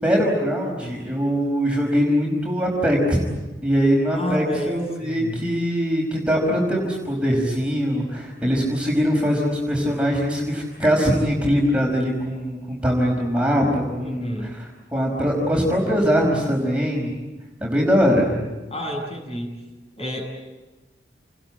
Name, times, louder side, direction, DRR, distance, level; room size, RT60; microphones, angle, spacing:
voice 1, 0.0-3.2 3.6-17.1 17.6-18.4, equal, 5° right, -2 dB, 5.0 m, -22 dB
voice 2, 4.1-4.8 5.0-5.5 14.0-14.6 18.7-19.6 20.0-20.2, equal, 30° left, 2 dB, 7.6 m, -30 dB
29.0 x 20.5 x 8.8 m, 1.1 s
head